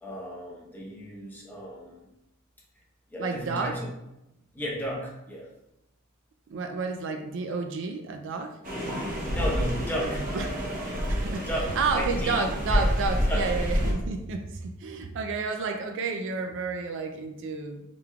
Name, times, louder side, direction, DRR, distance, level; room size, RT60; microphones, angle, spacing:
voice 1, 0.0-2.0 3.1-3.9 4.5-5.5 9.3-10.2 11.4-12.4 12.7-12.8 13.3-13.4, equal, 10° left, -3 dB, 0.9 m, -34 dB
voice 2, 3.2-3.8 6.5-8.6 9.9-10.6 11.1-11.5 11.7-17.8, right 4 dB, 60° right, 5 dB, 0.4 m, -31 dB
sound 1, 8.6-13.9, equal, 40° right, 0.9 m, -28 dB
sound 2, 8.6-14.0, right 2 dB, 85° right, 1.4 m, -44 dB
4.8 x 3.5 x 2.3 m, 0.90 s
head